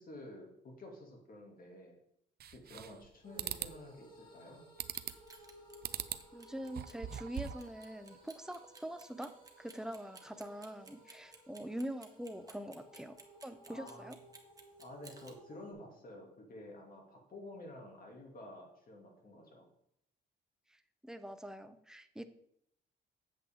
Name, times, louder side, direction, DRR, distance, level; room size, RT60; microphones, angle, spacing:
voice 1, 0.0-2.0 2.5-4.6 13.7-14.1 14.8-19.7, left 1 dB, 45° left, 1 dB, 2.8 m, -51 dB
sound 1, 2.4-3.1 3.4-3.7 4.8-5.3 5.8-6.3 6.6-7.7, right 10 dB, 55° right, 0.5 m, -40 dB
sound 2, 3.2-15.7, right 1 dB, 25° left, 3.0 m, -59 dB
Clock, 4.8-15.3, right 3 dB, 20° right, 1.4 m, -57 dB
voice 2, 6.3-14.2 21.0-22.2, right 1 dB, 5° right, 9 dB, 0.7 m, -44 dB
8.1 x 7.7 x 3.8 m, 0.73 s
cardioid pair, 90°, 20 cm